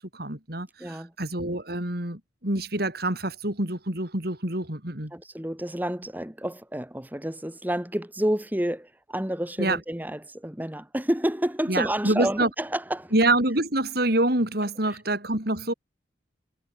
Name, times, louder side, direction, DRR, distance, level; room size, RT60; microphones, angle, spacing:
voice 1, 0.1-5.1 9.6-9.8 11.7-12.5 13.1-15.7, right 1 dB, 50° right, 4.5 m, -26 dB
voice 2, 0.8-1.1 5.1-13.1, right 1 dB, 10° right, 1.2 m, -29 dB
head